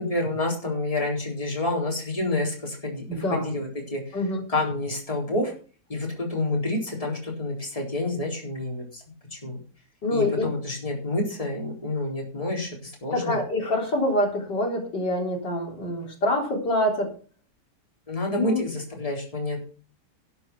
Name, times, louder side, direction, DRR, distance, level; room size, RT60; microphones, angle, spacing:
voice 1, 0.0-4.0 4.5-5.5 5.9-9.0 9.4-9.6 10.1-13.4 18.1-19.6, left 2 dB, 20° left, 0 dB, 4.0 m, -28 dB
voice 2, 3.1-3.5 4.1-4.4 10.0-10.5 13.1-17.1 18.4-18.6, left 1 dB, 90° left, 1 dB, 4.3 m, -25 dB
12.0 x 8.5 x 6.1 m, 0.38 s
omnidirectional pair, 1.8 m